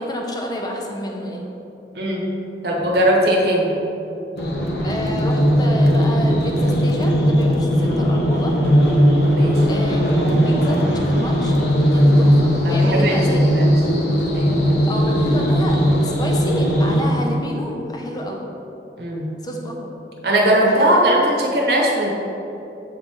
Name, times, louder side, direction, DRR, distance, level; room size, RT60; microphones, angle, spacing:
voice 1, 0.0-1.5 4.8-8.6 9.4-13.5 14.9-18.5 19.4-20.0 20.5-21.0, equal, 25° left, 0 dB, 0.6 m, -29 dB
voice 2, 1.9-2.3 2.6-3.8 9.3-9.6 12.6-13.7 14.3-14.8 19.0-19.3 20.2-22.1, right 1 dB, 65° right, -2 dB, 1.0 m, -19 dB
sound 1, 4.4-17.0, equal, 70° left, 0.9 m, -18 dB
7.8 x 2.8 x 4.8 m, 2.9 s
head